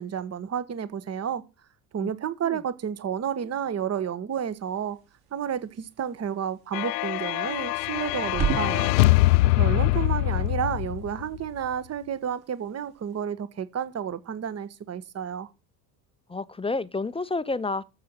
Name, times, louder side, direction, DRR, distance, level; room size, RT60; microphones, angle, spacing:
voice 1, 0.0-1.4 1.9-5.0 5.3-8.9 9.5-15.5, right 8 dB, 30° right, 1.3 m, -31 dB
sound 1, 4.3-13.2, right 6 dB, 45° right, 3.0 m, -38 dB
sound 2, 6.7-11.4, left 18 dB, 80° left, 0.5 m, -23 dB
voice 2, 16.3-17.8, left 3 dB, 10° left, 0.8 m, -29 dB
14.5 x 6.7 x 5.8 m
hypercardioid pair, 70°, 49 cm